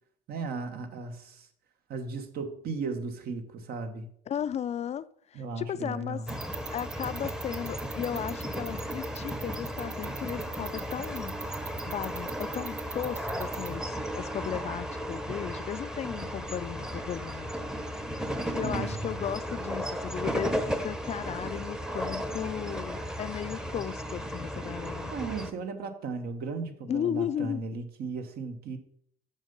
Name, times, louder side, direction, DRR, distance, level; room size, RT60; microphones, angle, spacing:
voice 1, 0.3-1.5 1.9-4.1 5.3-6.4 18.6-19.2 25.1-28.8, right 4 dB, 65° right, 7 dB, 1.3 m, -36 dB
voice 2, 4.3-5.0 5.3-6.2 6.6-11.4 11.8-17.5 18.5-25.1 26.9-27.6, left 9 dB, 40° left, 15 dB, 0.4 m, -35 dB
sound 1, 6.3-25.5, equal, 5° right, 0.8 m, -35 dB
sound 2, 6.3-13.8, right 7 dB, 45° right, 0.8 m, -40 dB
7.2 x 5.7 x 5.4 m, 0.65 s
cardioid pair, 110°, 17 cm